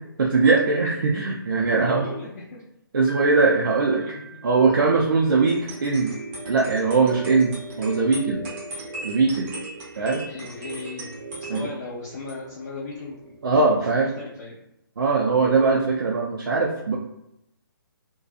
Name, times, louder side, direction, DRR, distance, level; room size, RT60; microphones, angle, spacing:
voice 1, 0.2-2.0 2.9-4.0 4.4-6.1 6.5-8.4 9.0-9.5 10.0-10.2 11.5-11.6 13.4-14.1 15.0-17.0, right 4 dB, 65° right, -2 dB, 0.5 m, -21 dB
voice 2, 1.8-2.6 4.0-4.4 10.3-13.9 14.2-14.6, left 3 dB, 45° left, -5 dB, 0.6 m, -37 dB
Piano, 3.1-5.2, right 6 dB, ahead, 0.4 m, -38 dB
sound 1, 5.4-13.7, right 2 dB, 20° right, 0.7 m, -38 dB
2.6 x 2.2 x 2.5 m, 0.83 s
figure-of-eight pair, 150°, 13 cm